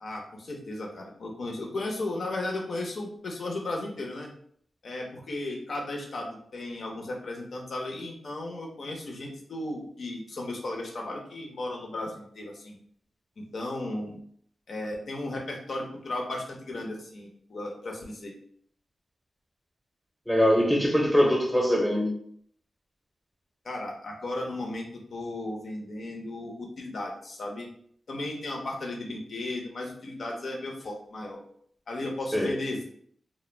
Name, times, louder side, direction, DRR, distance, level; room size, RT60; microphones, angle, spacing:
voice 1, 0.0-4.3 4.8-12.7 13.5-14.2 14.7-18.3 23.6-27.7 28.1-31.4 31.9-32.8, left 2 dB, 65° left, 0 dB, 0.6 m, -35 dB
voice 2, 20.3-22.1 32.3-32.6, equal, 5° left, -1 dB, 0.7 m, -22 dB
2.1 x 2.0 x 3.2 m, 0.63 s
cardioid pair, 60°, 0 cm